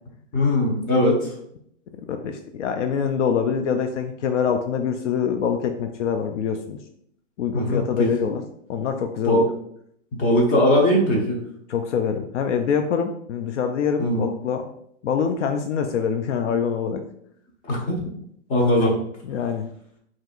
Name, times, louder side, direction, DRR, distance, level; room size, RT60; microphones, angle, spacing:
voice 1, 0.3-1.3 7.5-8.1 9.2-9.5 10.1-11.4 14.0-14.2 17.6-18.0 18.5-19.0, left 1 dB, 20° left, -2 dB, 1.1 m, -20 dB
voice 2, 2.1-6.8 7.4-8.4 8.7-9.4 11.7-14.7 15.0-17.0 18.8-18.9 19.3-19.7, left 7 dB, 70° left, 6 dB, 0.5 m, -25 dB
4.8 x 2.8 x 2.5 m, 0.69 s
hypercardioid pair, 140°, 38 cm